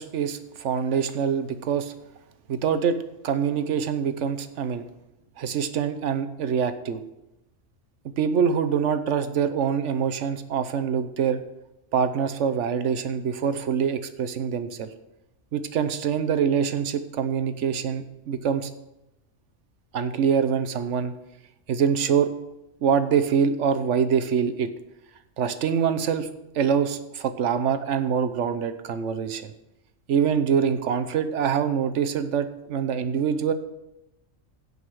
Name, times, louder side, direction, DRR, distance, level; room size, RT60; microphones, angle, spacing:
voice 1, 0.0-1.9 2.5-3.0 3.2-4.9 5.4-7.0 8.0-11.4 11.9-14.9 15.5-18.7 19.9-21.1 21.7-22.3 22.8-24.7 25.4-26.3 26.5-29.5 30.1-33.5, right 7 dB, 70° right, 11 dB, 1.1 m, -25 dB
16.5 x 5.5 x 4.7 m, 0.91 s
omnidirectional pair, 1.3 m